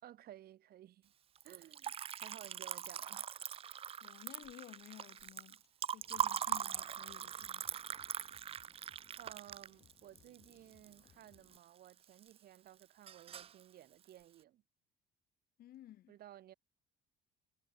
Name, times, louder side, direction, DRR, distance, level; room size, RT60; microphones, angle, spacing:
voice 1, 0.0-1.1 1.4-1.9 2.2-3.3 9.2-14.6 16.1-16.5, right 12 dB, 65° right, 3.8 m, -56 dB
Liquid, 1.4-11.6 11.9-12.6 12.8-13.6, right 9 dB, 35° right, 0.4 m, -41 dB
voice 2, 4.0-5.6 5.9-7.8 15.6-16.2, left 13 dB, 65° left, 2.0 m, -55 dB
sound 1, 6.0-11.6, left 8 dB, 40° left, 1.1 m, -69 dB
cardioid pair, 110°, 17 cm